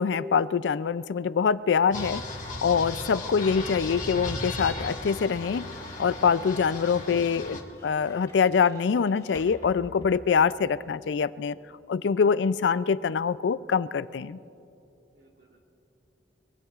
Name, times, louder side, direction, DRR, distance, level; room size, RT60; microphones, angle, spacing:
voice 1, 0.0-2.2 2.6-5.6 6.0-11.6 11.9-14.4, left 6 dB, 80° left, 16 dB, 0.4 m, -24 dB
sound 1, 1.9-7.6, left 2 dB, 45° left, 1.9 m, -36 dB
sound 2, 7.4-11.0, left 1 dB, 20° left, 4.3 m, -52 dB
voice 2, 15.1-15.6, right 1 dB, 85° right, 0 dB, 2.9 m, -62 dB
24.5 x 23.0 x 2.5 m, 2.8 s
head